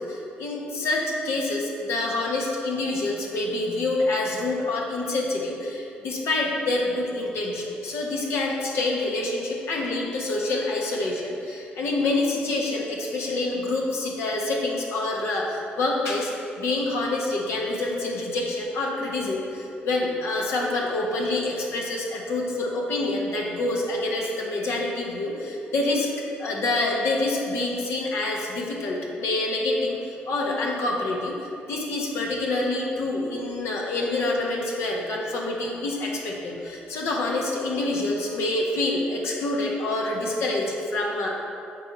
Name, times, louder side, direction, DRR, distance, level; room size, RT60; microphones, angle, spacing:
voice 1, 0.0-16.3 16.6-26.1 26.4-30.0 30.3-41.3, left 2 dB, 70° left, -2 dB, 1.2 m, -27 dB
8.0 x 4.3 x 4.1 m, 2.7 s
hypercardioid pair, 55°, 5 cm